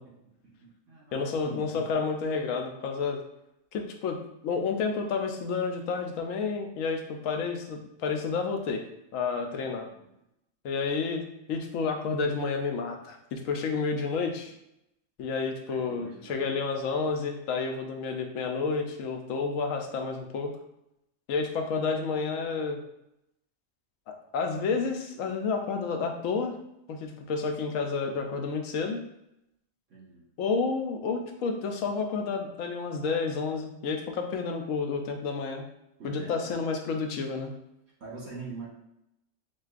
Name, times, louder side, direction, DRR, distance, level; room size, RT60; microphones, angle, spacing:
voice 1, 0.0-1.9 9.8-10.2 14.4-14.5 15.6-17.1 29.9-30.3 36.0-36.6 38.0-38.7, right 4 dB, 75° right, -5 dB, 1.6 m, -45 dB
voice 2, 1.1-3.2 3.7-8.8 9.1-9.9 10.6-14.5 15.2-20.5 21.3-22.8 24.3-26.6 26.9-29.0 30.4-35.6 36.0-37.5, left 4 dB, 90° left, 4 dB, 1.0 m, -30 dB
6.5 x 2.2 x 2.4 m, 0.83 s
omnidirectional pair, 1.3 m